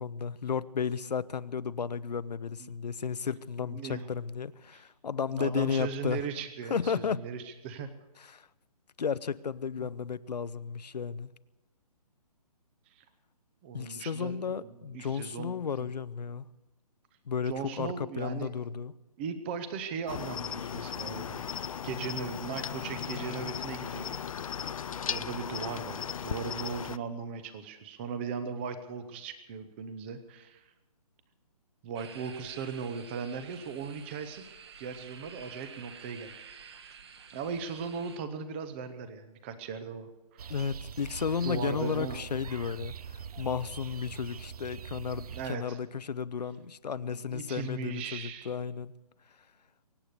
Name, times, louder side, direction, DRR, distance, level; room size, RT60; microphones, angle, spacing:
voice 1, 0.0-6.3 6.7-7.2 8.2-8.5 9.0-11.3 13.7-16.5 17.3-18.9 40.5-49.0, left 6 dB, 85° left, 0.8 m, -33 dB
voice 2, 3.6-4.1 4.7-4.8 5.3-7.9 9.8-9.9 13.0-13.1 13.6-15.6 17.4-18.5 19.2-21.4 21.8-24.2 25.1-30.6 31.8-36.4 37.3-40.4 41.4-42.2 45.3-45.8 46.9-48.5, right 6 dB, 15° right, 0.8 m, -38 dB
Cricket, 20.1-27.0, left 8 dB, 55° left, 0.5 m, -36 dB
sound 1, 31.9-38.2, right 6 dB, 40° right, 1.1 m, -50 dB
sound 2, 40.4-45.5, right 7 dB, 65° right, 0.6 m, -43 dB
23.5 x 9.0 x 6.7 m
hypercardioid pair, 165°, 20 cm